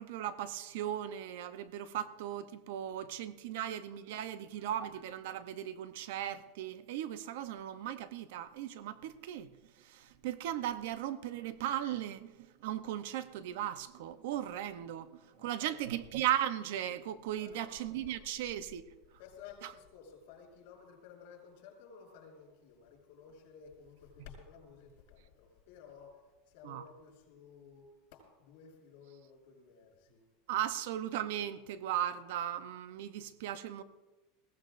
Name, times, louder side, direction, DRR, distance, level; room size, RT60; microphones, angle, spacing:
voice 1, 0.0-9.5 9.8-15.1 15.4-18.8 26.6-26.8 30.5-33.8, right 11 dB, 70° right, 0.7 m, -37 dB
voice 2, 4.0-4.4 15.3-15.8 17.4-18.5 19.0-30.3, left 6 dB, 60° left, 5.9 m, -55 dB
21.0 x 16.5 x 2.6 m
supercardioid pair, 160°, 0 cm